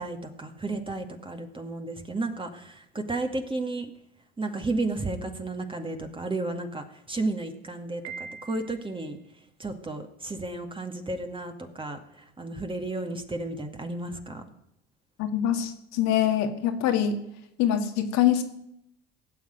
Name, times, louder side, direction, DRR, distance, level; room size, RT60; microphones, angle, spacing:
voice 1, 0.0-3.9 4.4-9.2 9.6-14.4, right 2 dB, 15° right, 4 dB, 2.1 m, -33 dB
Piano, 8.0-9.1, right 6 dB, 65° right, 2.3 m, -42 dB
voice 2, 15.2-17.2 17.6-18.4, left 10 dB, 60° left, 6 dB, 2.1 m, -24 dB
17.5 x 7.3 x 9.2 m, 0.78 s
hypercardioid pair, 80°, 31 cm